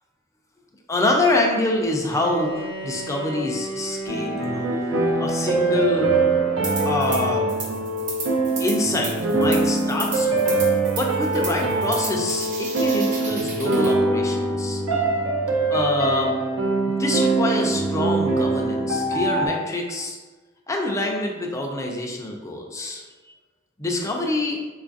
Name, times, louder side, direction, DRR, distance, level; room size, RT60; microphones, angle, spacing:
voice 1, 0.9-6.1 6.8-7.6 8.6-10.6 11.0-14.8 15.7-16.3 16.8-20.2 20.7-23.3 23.8-24.6, left 2 dB, 15° left, 0 dB, 0.4 m, -26 dB
Bowed string instrument, 2.1-7.1, equal, 75° left, 0.8 m, -37 dB
sound 1, 4.1-19.5, right 2 dB, 75° right, 0.5 m, -23 dB
sound 2, 6.6-7.2 7.5-13.9, right 3 dB, 40° right, 0.8 m, -34 dB
3.8 x 2.4 x 2.5 m, 1.3 s
head